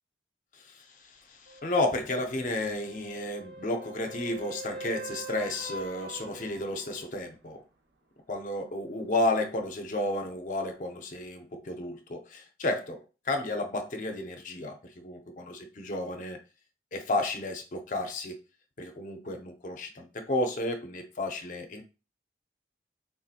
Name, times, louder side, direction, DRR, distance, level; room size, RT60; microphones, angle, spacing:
voice 1, 0.5-7.6 8.3-16.4 16.9-18.4 18.8-21.8, left 2 dB, 45° left, 0.5 m, -32 dB
sound 1, 1.5-7.1 11.2-11.3, right 2 dB, 70° right, 0.7 m, -44 dB
3.7 x 2.7 x 2.4 m
head